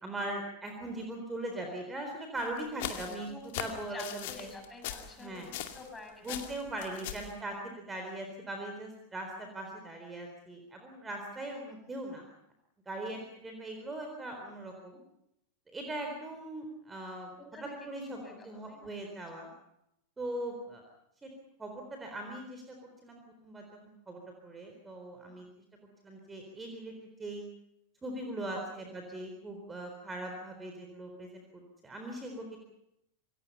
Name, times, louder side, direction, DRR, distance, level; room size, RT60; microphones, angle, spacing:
voice 1, 0.0-4.5 5.2-5.5 6.2-12.3 12.9-15.0 15.7-17.3 17.8-18.2 18.4-19.5 20.2-20.8 21.2-21.3 21.6-22.8 23.0-25.5 26.0-27.4 28.0-32.6, right 1 dB, 15° right, 3 dB, 4.1 m, -40 dB
sound 1, 2.4-6.0 6.2-7.3, left 11 dB, 50° left, 2.4 m, -40 dB
voice 2, 3.2-3.7 3.9-6.4 6.7-7.2 13.1-13.3 17.4-17.7 18.1-18.9 25.3-25.5 28.5-28.8 29.1-29.2, left 3 dB, 15° left, 3 dB, 7.5 m, -49 dB
27.5 x 22.5 x 5.6 m, 0.80 s
figure-of-eight pair, 90°, 0 cm